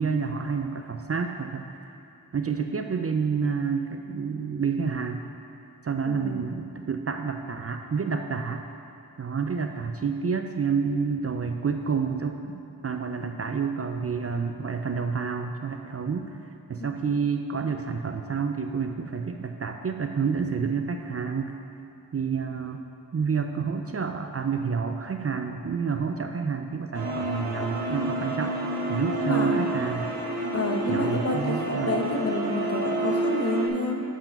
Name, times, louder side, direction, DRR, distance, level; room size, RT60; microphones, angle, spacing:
voice 1, 0.0-1.7 2.3-5.2 5.8-8.6 9.2-16.4 16.7-21.5 22.1-22.8 23.1-28.6 28.9-30.1 30.9-31.9, right 5 dB, 40° right, 5 dB, 0.4 m, -29 dB
voice 2, 6.1-6.5 29.2-29.5 30.5-34.0, left 2 dB, 40° left, 1 dB, 0.9 m, -29 dB
sound 1, 26.9-33.7, right 1 dB, 80° right, 1.1 m, -29 dB
7.7 x 4.8 x 5.4 m, 2.8 s
wide cardioid pair, 60°, 37 cm